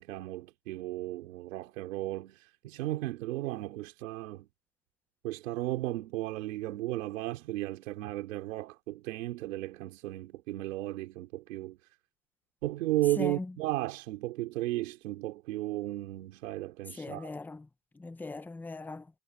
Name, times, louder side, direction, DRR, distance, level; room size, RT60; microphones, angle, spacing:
voice 1, 0.0-4.5 5.2-11.8 12.6-17.3, right 17 dB, 75° right, 3.9 m, -35 dB
voice 2, 17.0-17.7 18.0-19.0, left 3 dB, 5° left, 0.7 m, -39 dB
supercardioid pair, 145°, 39 cm